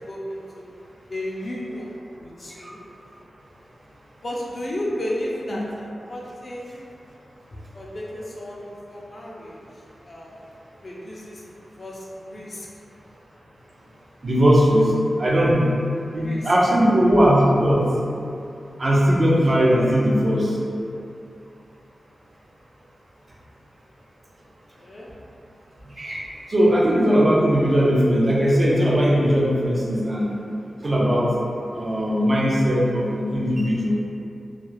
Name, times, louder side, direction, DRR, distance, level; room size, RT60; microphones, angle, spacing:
voice 1, 0.1-0.7 1.1-2.8 4.2-6.8 7.7-9.6 10.0-10.4 10.8-11.4 11.8-12.7 16.2-16.5 24.8-25.1, left 1 dB, 40° left, -4 dB, 0.4 m, -33 dB
voice 2, 14.2-15.7 16.1-17.9 18.8-20.6 25.8-26.2 26.5-30.4 30.8-31.3 31.7-34.0, equal, 40° right, -5 dB, 0.5 m, -19 dB
2.3 x 2.3 x 3.0 m, 2.7 s
wide cardioid pair, 135°, 0 cm